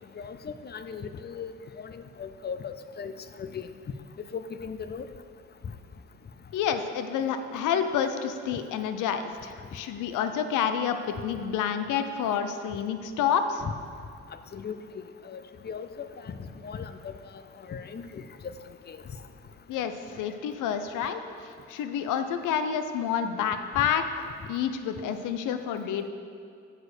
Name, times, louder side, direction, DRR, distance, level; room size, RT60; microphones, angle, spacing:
voice 1, 0.2-3.1 3.4-3.7 4.3-5.1 13.6-13.7 14.5-14.8 15.2-16.4 16.6-17.1 17.7-18.2 18.9-19.0, left 6 dB, 35° left, 10 dB, 0.5 m, -38 dB
voice 2, 6.5-13.6 19.7-21.2 21.7-26.1, left 8 dB, 85° left, 9 dB, 0.6 m, -29 dB
8.2 x 5.0 x 6.6 m, 2.5 s
cardioid pair, 90°, 30 cm